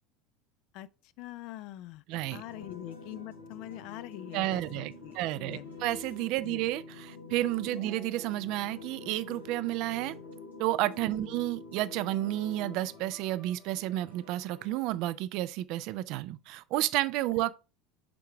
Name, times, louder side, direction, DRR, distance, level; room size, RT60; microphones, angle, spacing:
voice 1, 0.7-2.0 2.3-5.8 6.4-6.7 7.6-7.9, left 14 dB, 55° left, 0.4 m, -44 dB
sound 1, 2.1-14.8, left 3 dB, 90° left, 1.3 m, -47 dB
voice 2, 2.1-2.4 4.3-10.2 10.6-17.5, right 15 dB, 55° right, 0.4 m, -31 dB
5.9 x 3.7 x 4.5 m
figure-of-eight pair, 75°, 0 cm